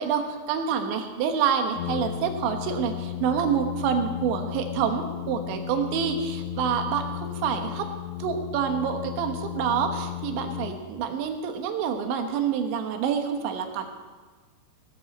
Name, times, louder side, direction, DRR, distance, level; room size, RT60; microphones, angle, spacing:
voice 1, 0.0-7.9 8.2-13.9, right 7 dB, 85° right, 5 dB, 3.5 m, -27 dB
Brass instrument, 1.7-11.2, left 12 dB, 80° left, 3.0 m, -35 dB
17.0 x 13.5 x 4.2 m, 1.4 s
omnidirectional pair, 5.1 m